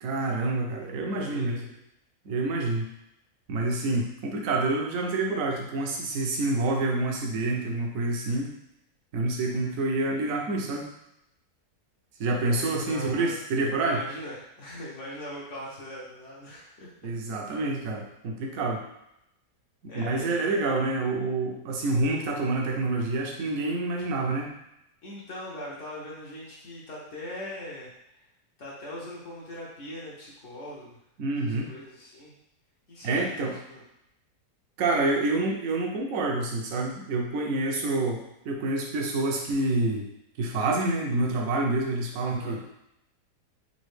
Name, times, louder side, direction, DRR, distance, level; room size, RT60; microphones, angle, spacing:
voice 1, 0.0-1.7 2.2-2.9 3.5-8.5 9.1-10.8 12.2-14.0 17.0-18.8 19.9-24.5 31.2-31.7 33.0-33.5 34.8-40.1 40.4-42.6, right 2 dB, 65° right, 0 dB, 1.0 m, -27 dB
voice 2, 1.1-1.8 12.5-13.3 13.9-16.9 17.4-17.5 19.9-20.6 25.0-27.9 28.6-31.0 31.4-32.3 32.9-33.8 42.1-42.6, left 1 dB, 55° left, -5 dB, 1.1 m, -41 dB
4.1 x 2.6 x 3.1 m, 0.82 s
omnidirectional pair, 1.7 m